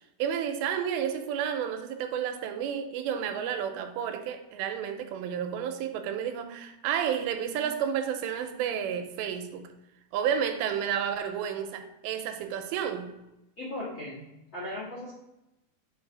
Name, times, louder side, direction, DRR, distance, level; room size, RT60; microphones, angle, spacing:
voice 1, 0.2-9.7 10.1-13.2, right 8 dB, 85° right, 2.8 m, -31 dB
voice 2, 13.6-15.1, left 1 dB, 60° left, 1.2 m, -38 dB
7.5 x 3.2 x 4.8 m
omnidirectional pair, 5.0 m